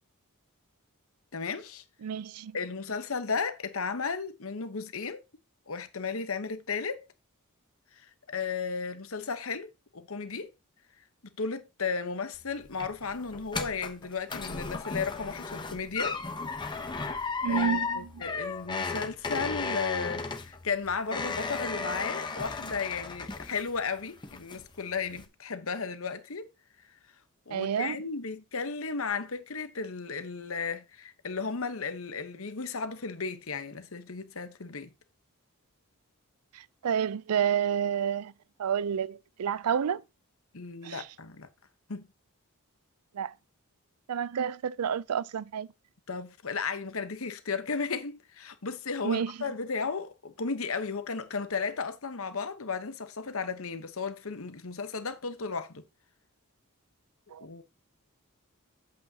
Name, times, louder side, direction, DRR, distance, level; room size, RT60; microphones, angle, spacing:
voice 1, 1.3-1.8 2.5-5.2 5.7-7.1 8.0-10.5 11.4-16.2 17.1-26.5 27.5-34.9 40.5-41.5 41.9-42.1 46.1-55.8 57.4-57.6, left 5 dB, 65° left, 1.0 m, -34 dB
voice 2, 2.0-2.6 17.4-18.2 27.5-28.0 36.5-38.3 38.6-40.0 40.8-41.1 43.1-43.3 44.1-45.7 49.0-49.3 57.3-57.5, right 8 dB, 85° right, 0.4 m, -30 dB
sound 1, 12.3-23.9 24.2-24.8 25.1-25.3, left 4 dB, 20° left, 0.9 m, -35 dB
8.3 x 8.2 x 2.8 m
head